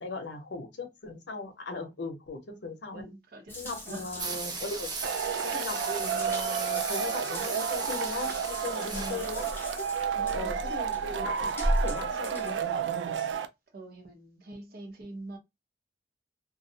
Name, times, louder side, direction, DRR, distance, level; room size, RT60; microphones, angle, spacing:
voice 1, 0.0-3.1 3.6-9.4 10.3-11.5 11.8-12.6, left 3 dB, 75° left, 0.7 m, -38 dB
voice 2, 2.9-4.1 8.9-9.3 10.1-10.6 13.7-15.4, right 2 dB, 60° right, 0.8 m, -44 dB
Water tap faucet / Bathtub (filling or washing) / Drip, 3.5-13.3, equal, 15° left, 0.7 m, -37 dB
sound 1, 4.2-9.5, right 4 dB, 25° right, 0.5 m, -38 dB
Male speech man speaking / Shout / Clapping, 5.0-13.5, right 7 dB, 85° right, 0.3 m, -31 dB
2.3 x 2.0 x 2.6 m
head